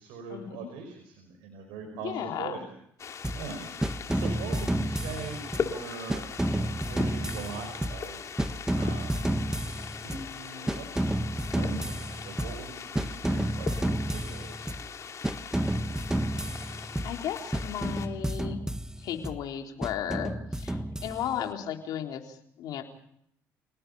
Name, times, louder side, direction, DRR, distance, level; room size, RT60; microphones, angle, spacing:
voice 1, 0.0-2.6 3.3-8.2 8.7-9.3 10.0-14.7, right 5 dB, 85° right, 3 dB, 5.4 m, -42 dB
voice 2, 2.0-2.6 17.0-18.6 19.0-22.8, left 9 dB, 70° left, 3 dB, 3.9 m, -35 dB
sound 1, 3.0-18.1, left 6 dB, 50° left, 3.1 m, -40 dB
sound 2, 3.2-3.5 3.8-5.8 6.1-8.1 8.4-10.3 10.7-12.7 13.0-14.9 15.2-17.2 17.5-19.4 19.8-21.5, right 1 dB, 10° right, 1.5 m, -31 dB
28.5 x 19.0 x 5.5 m, 0.71 s
supercardioid pair, 75°, 7 cm